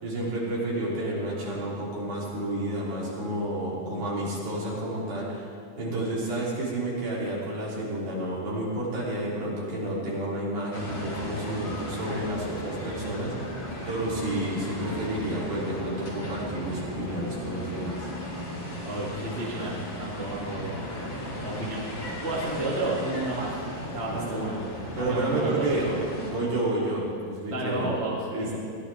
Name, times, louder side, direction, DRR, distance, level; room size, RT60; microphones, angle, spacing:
voice 1, 0.0-5.5 5.8-13.6 13.9-18.1 24.1-24.4 25.0-25.9 26.3-27.9 28.3-28.6, right 1 dB, 50° right, -6 dB, 4.5 m, -30 dB
sound 1, 10.7-26.3, left 1 dB, 35° left, 4.2 m, -36 dB
voice 2, 18.8-20.8 21.4-21.8 22.2-23.6 23.9-24.6 25.0-25.9 27.5-28.6, right 2 dB, 25° right, -4 dB, 1.7 m, -31 dB
21.5 x 16.0 x 3.4 m, 2.3 s
omnidirectional pair, 4.6 m